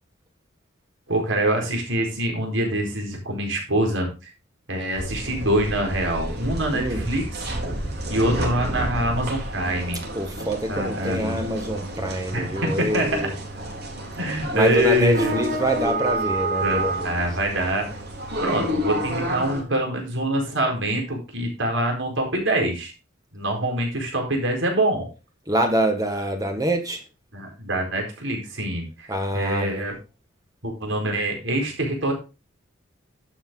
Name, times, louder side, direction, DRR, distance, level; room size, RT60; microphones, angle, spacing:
voice 1, 1.1-4.3 4.7-7.5 8.1-10.0 10.7-11.4 12.3-13.2 14.2-15.3 16.5-17.8 18.4-22.9 23.3-25.1 27.3-29.1 29.3-29.9 30.6-32.1, right 1 dB, 70° right, 1 dB, 4.5 m, -25 dB
sound 1, 4.9-19.6, right 1 dB, 55° right, 3.8 m, -30 dB
voice 2, 6.7-7.1 10.1-13.3 14.5-17.2 25.5-27.0 29.1-29.8, right 1 dB, 20° right, 5 dB, 1.5 m, -25 dB
11.5 x 8.1 x 3.8 m, 0.30 s
head